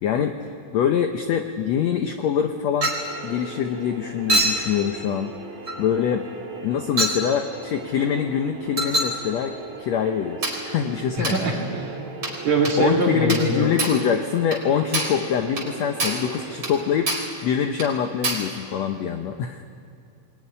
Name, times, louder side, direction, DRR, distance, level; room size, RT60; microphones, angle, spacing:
voice 1, 0.0-0.4 0.7-2.9 3.2-5.3 5.8-6.3 6.6-11.3 12.8-19.6, left 8 dB, 75° left, 6 dB, 1.6 m, -24 dB
Chink clink, 2.8-3.1 4.3-4.7 5.7-5.8 7.0-7.2 8.8-9.2 10.4-10.7 11.2-11.4 12.2-12.4 12.7-12.8 13.3-13.5 13.8-14.0 14.5-14.6 14.9-15.2 15.6-15.7 16.0-16.3 16.6-16.8 17.1-17.3 17.8-17.9 18.2-18.5, right 2 dB, 25° right, 4.3 m, -25 dB
sound 1, 3.0-16.9, right 4 dB, 65° right, 5.0 m, -39 dB
voice 2, 11.2-12.0 12.4-13.7, right 3 dB, 50° right, -1 dB, 4.4 m, -23 dB
22.5 x 21.5 x 10.0 m, 2.3 s
omnidirectional pair, 4.3 m